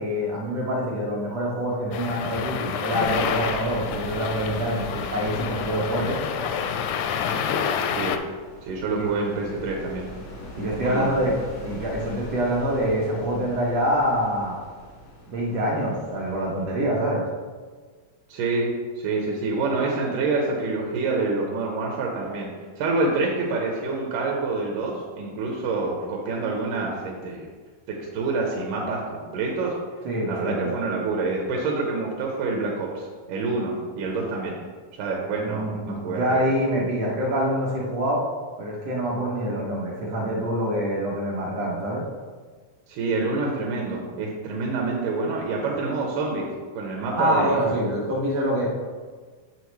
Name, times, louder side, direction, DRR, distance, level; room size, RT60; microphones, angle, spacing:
voice 1, 0.0-6.2 8.9-9.1 10.5-14.6 15.3-17.3 30.0-30.8 35.4-38.2 38.6-42.0 47.2-48.7, equal, 65° right, -4 dB, 1.7 m, -25 dB
sound 1, 1.9-8.2, left 7 dB, 80° left, 1.7 m, -28 dB
sound 2, 3.0-17.0, left 1 dB, 60° left, 0.9 m, -41 dB
voice 2, 8.6-10.1 10.8-11.2 18.3-22.5 22.8-27.5 27.9-29.7 30.3-34.6 34.9-36.4 42.9-46.5 46.7-47.6, right 3 dB, 85° right, -1 dB, 2.4 m, -27 dB
7.0 x 6.0 x 3.1 m, 1.5 s
omnidirectional pair, 3.6 m